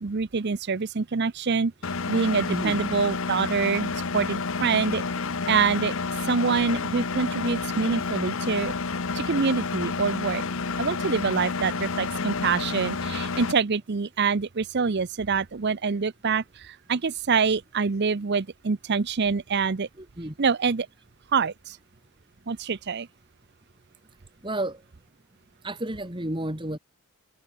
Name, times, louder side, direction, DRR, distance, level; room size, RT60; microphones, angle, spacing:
voice 1, 0.0-1.7 2.1-5.0 5.5-5.9 6.2-8.7 9.1-10.4 10.8-19.9 20.4-20.9 21.3-21.8 22.5-23.1, right 5 dB, 50° right, 0.6 m, -25 dB
Engine, 1.8-13.5, left 4 dB, 60° left, 1.0 m, -30 dB
voice 2, 2.5-2.8 20.0-20.4 24.4-24.8 25.6-26.8, right 1 dB, 20° right, 3.6 m, -31 dB
head